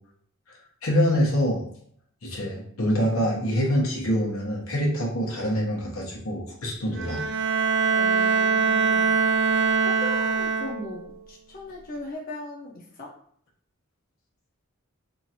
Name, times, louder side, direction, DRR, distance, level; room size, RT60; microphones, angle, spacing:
voice 1, 0.8-1.6 2.2-7.2, equal, 85° left, -2 dB, 1.0 m, -25 dB
Bowed string instrument, 7.0-11.1, right 5 dB, 55° right, 0.4 m, -23 dB
voice 2, 7.9-9.1 9.8-13.1, left 2 dB, 45° left, -3 dB, 0.7 m, -39 dB
2.9 x 2.5 x 4.2 m, 0.63 s
head